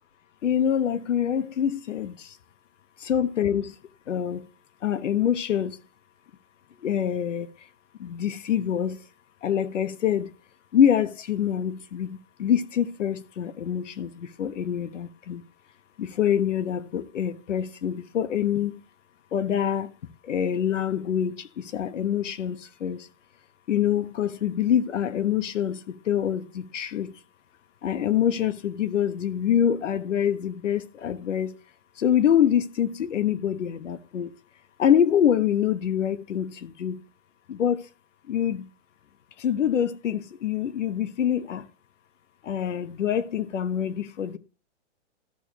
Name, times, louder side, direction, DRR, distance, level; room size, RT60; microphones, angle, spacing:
voice 1, 0.4-2.1 3.0-3.7 4.1-4.4 4.8-5.8 6.8-7.5 8.0-9.0 9.4-10.3 10.7-12.1 12.4-15.4 16.0-18.8 19.3-19.9 20.3-21.4 21.7-23.0 23.7-25.8 26.1-27.1 27.8-31.5 32.0-34.3 34.8-37.0 37.5-37.8 38.3-38.6 39.4-41.6 42.5-44.4, left 9 dB, 80° left, 1.3 m, -25 dB
14.0 x 6.6 x 3.0 m
hypercardioid pair, 155°, 36 cm